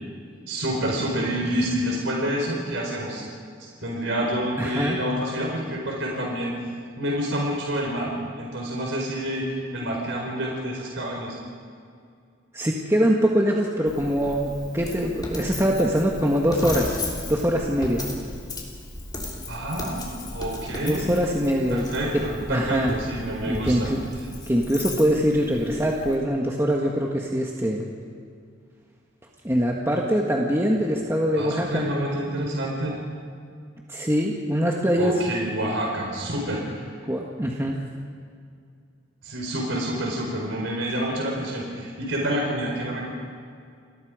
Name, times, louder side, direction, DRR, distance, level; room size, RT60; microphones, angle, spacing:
voice 1, 0.5-3.2 3.8-6.5 7.0-11.4 19.5-21.1 21.7-23.9 31.3-33.0 35.0-36.8 39.2-43.1, equal, 75° right, -1 dB, 4.7 m, -28 dB
voice 2, 4.6-5.0 12.5-18.0 20.8-21.9 22.1-22.2 22.5-22.9 23.5-24.0 24.5-27.8 29.4-31.8 33.9-35.2 37.1-37.8, equal, 15° right, -1 dB, 1.8 m, -23 dB
Coin (dropping), 13.9-26.2, left 1 dB, 20° left, 3.6 m, -35 dB
29.5 x 22.0 x 5.1 m, 2.3 s
head